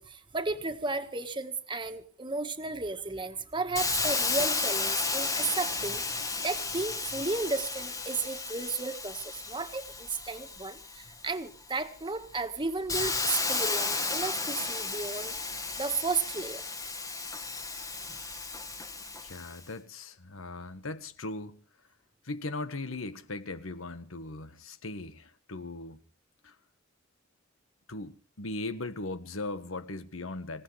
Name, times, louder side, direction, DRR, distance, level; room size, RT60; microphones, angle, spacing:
voice 1, 0.0-15.3 15.8-16.6, right 3 dB, 25° right, 1.6 m, -34 dB
Hiss, 3.8-11.3 11.8-19.6, left 3 dB, 15° left, 1.4 m, -33 dB
voice 2, 19.2-21.6 22.2-26.0 26.4-26.5 27.9-30.6, left 2 dB, 90° left, 1.4 m, -38 dB
25.5 x 17.0 x 3.3 m
head